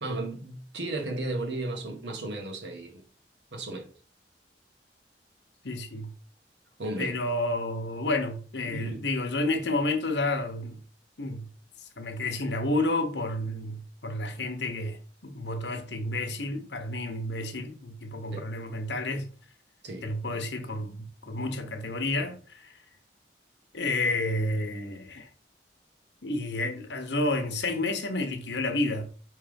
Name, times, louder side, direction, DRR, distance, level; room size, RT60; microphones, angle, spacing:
voice 1, 0.0-2.9 3.5-3.9 6.8-7.1 8.6-9.0 18.3-18.5 19.8-20.4, right 2 dB, 90° right, 1.6 m, -34 dB
voice 2, 5.6-6.1 7.0-10.8 11.2-11.5 12.0-19.3 20.0-22.7 23.7-25.3 26.2-29.1, left 2 dB, 80° left, 1.1 m, -30 dB
5.8 x 3.3 x 5.2 m
head